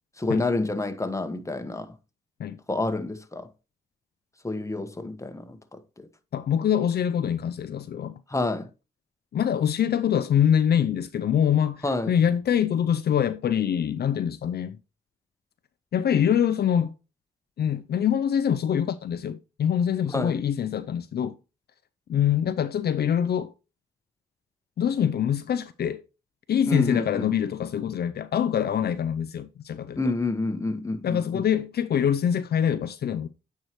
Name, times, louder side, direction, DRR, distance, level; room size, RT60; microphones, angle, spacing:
voice 1, 0.2-1.9 2.7-3.5 4.4-6.1 8.3-8.7 11.8-12.1 20.1-20.4 26.7-27.3 30.0-31.4, left 2 dB, 15° left, 1.3 m, -28 dB
voice 2, 6.3-8.2 9.3-14.8 15.9-16.9 17.6-21.4 22.1-23.5 24.8-26.0 26.5-30.0 31.0-33.3, left 9 dB, 65° left, 0.6 m, -24 dB
8.8 x 4.8 x 3.1 m
cardioid pair, 60°, 18 cm